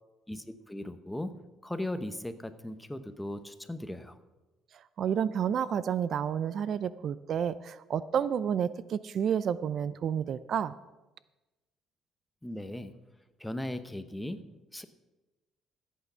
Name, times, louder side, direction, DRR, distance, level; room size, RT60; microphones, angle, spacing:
voice 1, 0.3-4.2 12.4-13.0 13.4-14.5 14.7-14.8, left 1 dB, 5° left, 10 dB, 0.9 m, -38 dB
voice 2, 4.7-10.7, right 8 dB, 55° right, 16 dB, 0.4 m, -30 dB
14.0 x 8.4 x 5.7 m, 1.1 s
cardioid pair, 100°, 0 cm